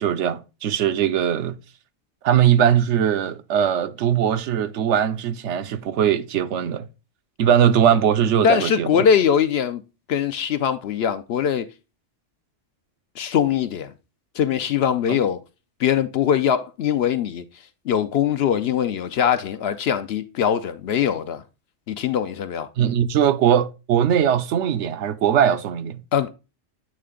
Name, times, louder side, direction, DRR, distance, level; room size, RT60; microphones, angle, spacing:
voice 1, 0.0-1.6 2.2-6.9 7.4-9.0 15.1-15.2 22.8-26.0, right 9 dB, 75° right, 0.9 m, -20 dB
voice 2, 8.4-9.8 10.1-11.7 13.2-13.9 14.4-15.4 15.8-17.4 17.9-21.4 21.9-22.7 26.1-26.3, left 8 dB, 65° left, 0.7 m, -22 dB
8.6 x 3.3 x 3.6 m
omnidirectional pair, 1.3 m